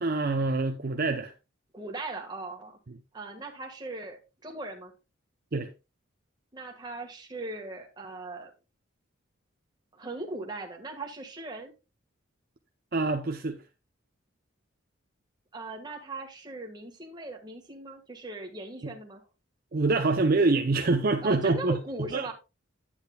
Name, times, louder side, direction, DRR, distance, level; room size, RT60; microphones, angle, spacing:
voice 1, 0.0-1.3 5.5-5.7 12.9-13.6 18.8-18.9 19.7-21.8 22.1-22.3, right 3 dB, 45° right, 0.6 m, -25 dB
voice 2, 1.7-2.8 3.1-4.9 6.5-8.5 9.9-11.7 15.5-19.2 21.2-22.3, right 2 dB, 20° right, 1.5 m, -39 dB
9.9 x 8.6 x 2.3 m
head